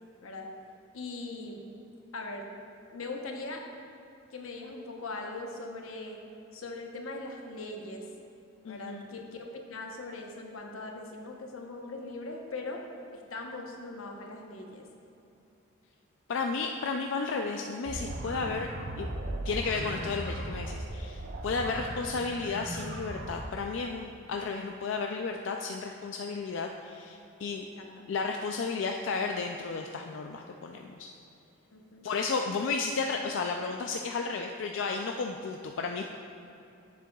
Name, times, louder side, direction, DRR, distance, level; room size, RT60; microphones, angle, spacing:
voice 1, 0.9-1.6 2.1-2.5 2.9-3.6 4.3-6.2 6.5-8.0 8.6-12.8 13.1-14.8 27.6-28.0 31.7-32.1, left 2 dB, 85° left, 1 dB, 0.9 m, -40 dB
voice 2, 8.6-9.1 16.3-18.7 19.0-19.1 19.4-27.7 28.1-31.1 32.0-36.0, left 4 dB, 60° left, 2 dB, 0.3 m, -33 dB
sound 1, 17.9-23.6, right 1 dB, 50° right, 0.6 m, -38 dB
10.0 x 7.4 x 2.3 m, 2.8 s
head